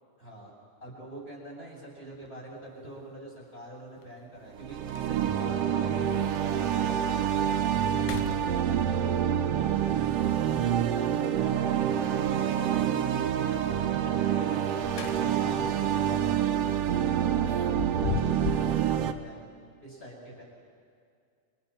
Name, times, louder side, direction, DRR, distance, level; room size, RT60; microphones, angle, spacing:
voice 1, 0.2-0.5 0.8-6.1 6.4-9.3 10.2-13.3 13.5-14.6 14.9-19.4 19.8-20.4, right 1 dB, 20° left, -2 dB, 7.9 m, -45 dB
sound 1, 2.1-2.3 4.0-4.1 4.5-4.6 4.9-5.4 6.0-6.1 6.6-6.7 7.1-7.5 7.9-9.0 11.1-11.8 14.5-15.6 16.0-16.2 17.5-18.8, left 9 dB, 75° left, 1.5 m, -37 dB
sound 2, 4.5-19.1, right 9 dB, 70° right, 1.7 m, -27 dB
30.0 x 28.0 x 4.4 m, 2.3 s
omnidirectional pair, 3.5 m